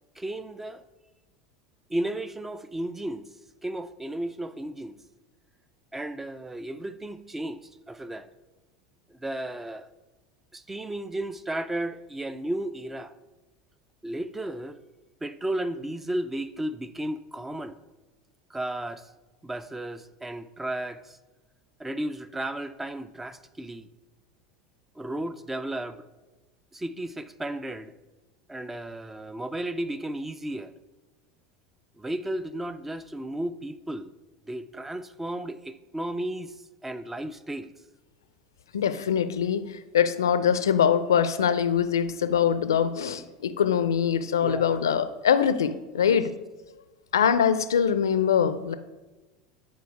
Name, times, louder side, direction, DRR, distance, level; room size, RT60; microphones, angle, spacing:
voice 1, 0.2-0.8 1.9-3.3 3.6-5.0 5.9-7.6 7.9-8.3 9.1-9.9 10.5-13.1 14.0-14.8 15.2-17.8 18.5-19.1 19.4-21.2 21.8-23.9 25.0-26.0 26.7-27.9 28.5-30.7 32.0-34.1 34.5-36.5 36.8-37.7 44.4-44.8 46.1-46.2, right 1 dB, 10° right, 0.5 m, -34 dB
voice 2, 38.7-46.3 47.1-48.7, left 8 dB, 75° left, 0.5 m, -23 dB
9.5 x 4.5 x 4.6 m
figure-of-eight pair, 80°, 2 cm